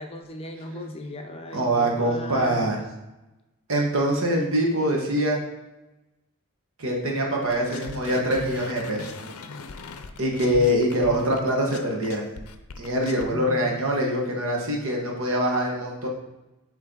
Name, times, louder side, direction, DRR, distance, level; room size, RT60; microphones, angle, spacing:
voice 1, 0.0-2.7 13.3-13.7, left 1 dB, 25° left, 3 dB, 0.5 m, -37 dB
voice 2, 1.5-2.8 3.7-5.4 6.8-9.1 10.2-12.2 12.8-16.1, equal, 65° right, -1 dB, 1.4 m, -24 dB
sound 1, 7.5-13.3, left 4 dB, 75° left, 0.5 m, -39 dB
8.3 x 3.3 x 3.8 m, 1.0 s
head